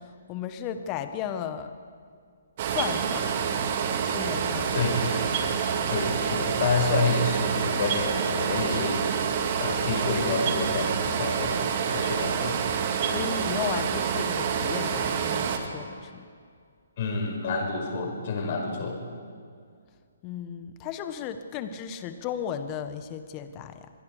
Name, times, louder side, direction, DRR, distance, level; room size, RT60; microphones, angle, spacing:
voice 1, 0.0-1.7 2.6-3.3 4.0-4.8 13.0-16.3 20.2-23.9, left 8 dB, 30° left, 9 dB, 1.4 m, -35 dB
sound 1, 2.6-15.6, right 7 dB, 45° right, 2.2 m, -27 dB
voice 2, 4.7-5.2 5.9-9.0 9.6-12.6 17.0-19.0, left 3 dB, 45° left, 2 dB, 5.8 m, -28 dB
27.0 x 21.0 x 5.0 m, 2.2 s
figure-of-eight pair, 135°, 0 cm